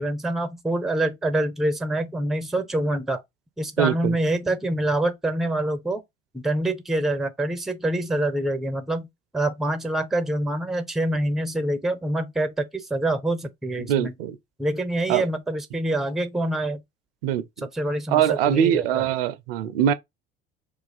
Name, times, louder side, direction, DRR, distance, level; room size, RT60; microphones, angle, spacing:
voice 1, 0.0-3.2 3.6-6.0 6.3-9.1 9.3-14.1 14.6-16.8 17.6-19.1, right 1 dB, ahead, 0.5 m, -26 dB
voice 2, 3.8-4.2 13.8-14.4 15.1-15.3 17.2-17.4 18.1-19.9, right 10 dB, 70° right, 0.5 m, -22 dB
2.5 x 2.3 x 4.0 m
figure-of-eight pair, 65°, 31 cm